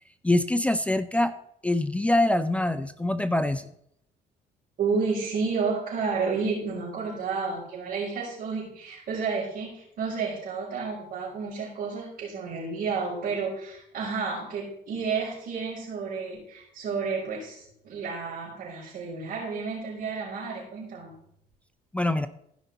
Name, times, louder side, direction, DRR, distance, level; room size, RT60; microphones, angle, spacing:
voice 1, 0.2-1.3 1.6-3.7 21.9-22.3, left 1 dB, 5° left, 11 dB, 0.5 m, -24 dB
voice 2, 4.8-21.2, right 5 dB, 60° right, -9 dB, 4.7 m, -31 dB
15.0 x 5.6 x 4.0 m, 0.71 s
cardioid pair, 110°, 17 cm